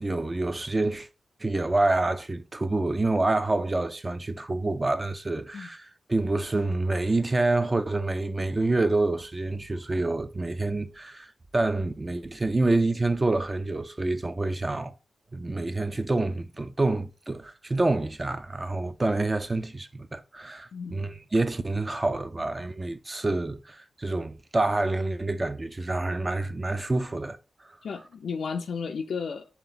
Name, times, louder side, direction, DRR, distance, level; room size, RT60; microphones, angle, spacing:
voice 1, 0.0-1.1 1.4-11.3 11.5-14.9 15.3-27.4, right 2 dB, 25° right, 0.4 m, -27 dB
voice 2, 20.7-21.1 27.8-29.4, left 5 dB, 75° left, 0.3 m, -33 dB
3.4 x 2.8 x 3.9 m
cardioid pair, 80°, 0 cm